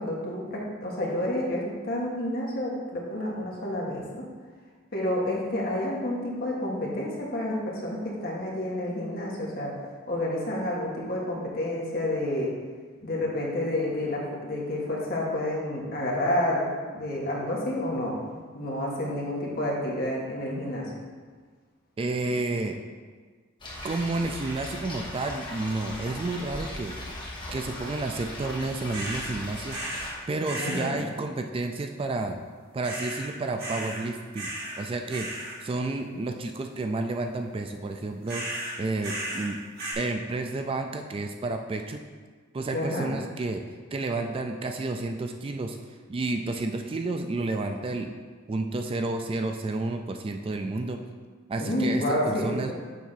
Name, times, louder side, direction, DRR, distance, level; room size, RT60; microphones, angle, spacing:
voice 1, 0.0-4.2 4.9-9.7 10.1-12.5 13.0-16.7 16.9-18.2 18.5-20.9 30.6-31.0 42.7-43.1 51.6-52.7, left 1 dB, 50° left, -3 dB, 1.5 m, -29 dB
voice 2, 22.0-22.8 23.8-27.0 27.5-29.8 30.3-32.4 32.7-35.3 35.6-38.5 38.8-39.6 40.0-42.0 42.5-43.6 43.9-45.8 46.1-48.1 48.5-51.0 51.5-52.7, right 2 dB, 25° right, 5 dB, 0.3 m, -31 dB
sound 1, 23.6-30.1, left 1 dB, 25° left, 1.4 m, -38 dB
sound 2, 24.4-24.7 25.1-25.5 25.9-26.3 28.9-29.3 29.7-30.1 30.4-30.9 32.8-33.3 33.6-34.0 34.3-34.8 35.1-35.6 38.3-39.5 39.8-39.9, right 1 dB, 50° right, 1.9 m, -36 dB
7.3 x 3.4 x 5.7 m, 1.5 s
head